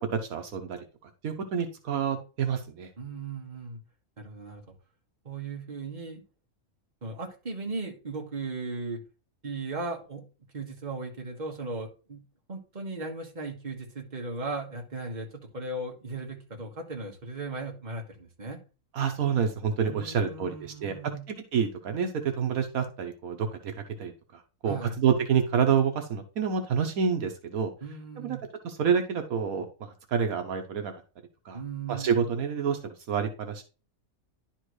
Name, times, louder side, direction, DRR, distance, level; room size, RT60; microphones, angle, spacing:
voice 1, 0.1-0.8 1.2-2.9 18.9-21.0 21.3-23.7 24.0-24.1 24.6-27.7 28.2-28.4 28.6-29.7 30.1-30.9 31.5-31.6 31.9-33.6, right 7 dB, 75° right, 6 dB, 1.3 m, -28 dB
voice 2, 3.0-3.8 4.2-4.6 5.2-6.2 7.0-9.0 9.4-10.2 10.5-12.2 12.5-18.6 19.9-21.2 24.6-24.9 27.8-28.4 31.5-32.3, right 3 dB, 30° right, 1 dB, 1.6 m, -37 dB
11.0 x 4.4 x 3.2 m, 0.34 s
omnidirectional pair, 1.5 m